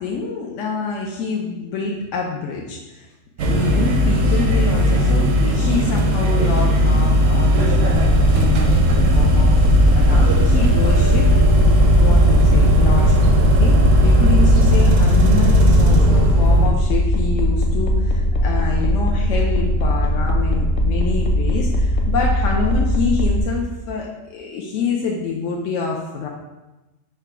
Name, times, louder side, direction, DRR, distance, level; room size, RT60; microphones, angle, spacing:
voice 1, 0.0-3.1 3.5-9.6 9.9-11.3 11.6-26.3, left 4 dB, 80° left, -1 dB, 0.9 m, -27 dB
sound 1, 3.4-16.7, equal, 85° right, 1.0 m, -16 dB
sound 2, 7.9-23.4, left 1 dB, 55° left, 0.6 m, -20 dB
4.9 x 2.2 x 4.7 m, 1.1 s
omnidirectional pair, 1.3 m